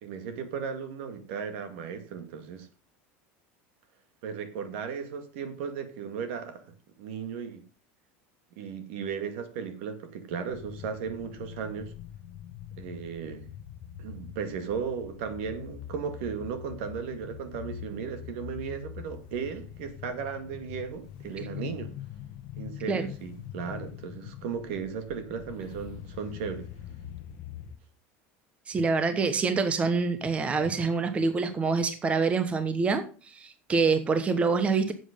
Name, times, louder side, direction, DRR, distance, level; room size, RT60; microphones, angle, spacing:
voice 1, 0.0-2.7 4.2-6.6 7.0-7.6 8.6-11.9 12.8-13.5 14.0-21.9 22.6-26.7, right 6 dB, 80° right, 2.1 m, -36 dB
sound 1, 10.5-27.8, left 10 dB, 60° left, 0.9 m, -43 dB
voice 2, 28.7-34.9, right 4 dB, 20° right, 1.0 m, -26 dB
10.5 x 7.7 x 5.2 m
cardioid pair, 150°, 6 cm